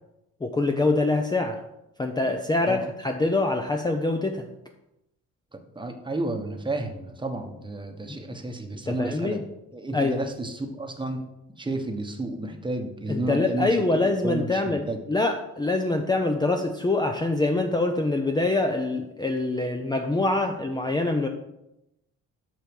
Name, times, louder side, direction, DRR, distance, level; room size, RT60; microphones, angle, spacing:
voice 1, 0.4-1.6 2.0-4.5 8.1-8.2 8.9-9.4 9.9-10.2 13.1-21.3, left 2 dB, 15° left, 4 dB, 0.5 m, -25 dB
voice 2, 5.5-9.4 9.7-11.3 11.6-15.0, right 2 dB, 15° right, 4 dB, 1.0 m, -32 dB
5.8 x 4.7 x 5.2 m, 0.89 s
cardioid pair, 90°, 30 cm